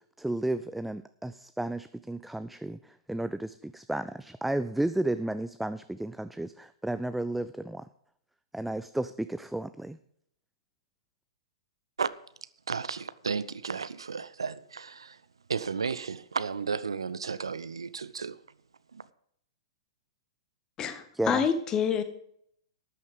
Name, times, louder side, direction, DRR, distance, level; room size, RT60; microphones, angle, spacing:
voice 1, 0.2-2.8 3.1-7.9 8.5-10.0 21.1-21.4, right 1 dB, 5° right, 0.4 m, -32 dB
voice 2, 12.7-15.2 15.5-18.4 18.9-19.0, right 5 dB, 75° right, 0.6 m, -33 dB
voice 3, 20.8-22.0, left 7 dB, 25° left, 1.5 m, -27 dB
13.0 x 9.3 x 5.2 m
figure-of-eight pair, 105°, 3 cm